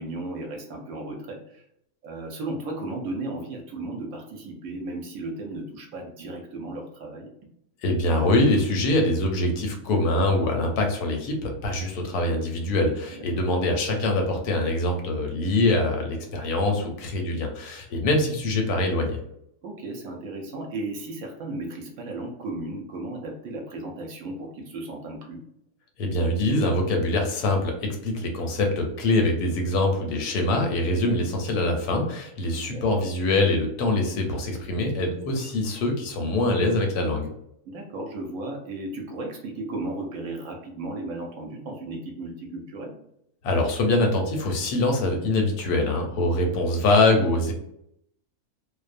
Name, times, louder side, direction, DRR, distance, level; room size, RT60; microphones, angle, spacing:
voice 1, 0.0-1.6 2.0-7.3 13.1-13.5 19.6-25.4 32.6-33.1 37.7-43.0, right 2 dB, 70° right, 2 dB, 0.9 m, -35 dB
voice 2, 7.8-19.2 26.0-37.3 43.4-47.5, left 2 dB, 90° left, 3 dB, 1.2 m, -24 dB
2.6 x 2.1 x 2.4 m, 0.76 s
omnidirectional pair, 1.6 m